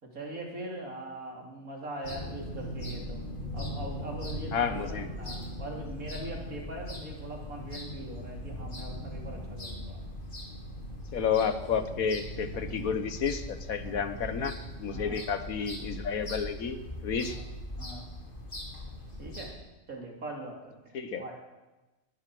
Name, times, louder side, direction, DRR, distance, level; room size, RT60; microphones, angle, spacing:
voice 1, 0.0-3.2 3.5-10.0 13.8-14.1 14.9-15.2 17.2-17.4 17.8-18.1 19.2-19.5 19.9-21.4, right 1 dB, 85° right, 0 dB, 3.5 m, -41 dB
sound 1, 2.0-19.5, left 1 dB, 40° left, 2.5 m, -40 dB
voice 2, 4.5-5.1 11.1-16.8 17.0-17.4 20.9-21.2, left 6 dB, 85° left, 10 dB, 1.6 m, -31 dB
20.5 x 11.0 x 6.2 m, 1.1 s
omnidirectional pair, 1.4 m